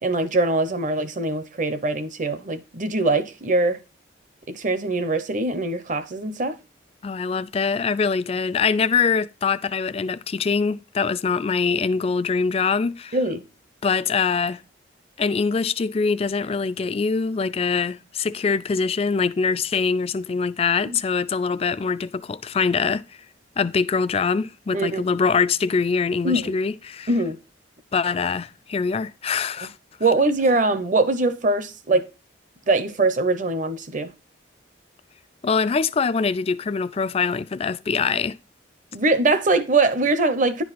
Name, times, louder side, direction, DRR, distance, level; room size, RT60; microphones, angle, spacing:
voice 1, 0.0-3.8 4.5-6.6 13.1-13.4 20.9-21.0 24.7-25.0 26.2-26.5 27.1-27.4 30.0-32.0 32.7-34.1 38.9-40.6, right 2 dB, 45° right, 0.8 m, -22 dB
voice 2, 7.0-13.2 13.8-14.6 15.2-23.0 23.6-27.1 27.9-29.7 35.4-38.4, left 5 dB, 30° left, 0.3 m, -23 dB
10.5 x 4.7 x 4.1 m
head